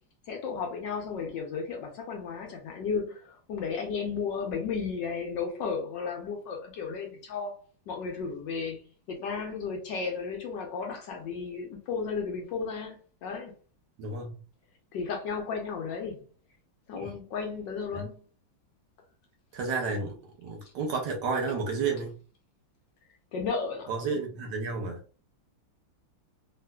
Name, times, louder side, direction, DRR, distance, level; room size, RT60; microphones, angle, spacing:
voice 1, 0.3-7.5 7.9-13.5 14.9-16.2 16.9-18.2 23.3-23.9, left 5 dB, 70° left, 1.2 m, -34 dB
voice 2, 14.0-14.3 16.9-17.1 17.9-18.1 19.5-22.1 23.9-25.0, right 4 dB, 65° right, 1.2 m, -31 dB
3.6 x 2.4 x 2.2 m
omnidirectional pair, 2.2 m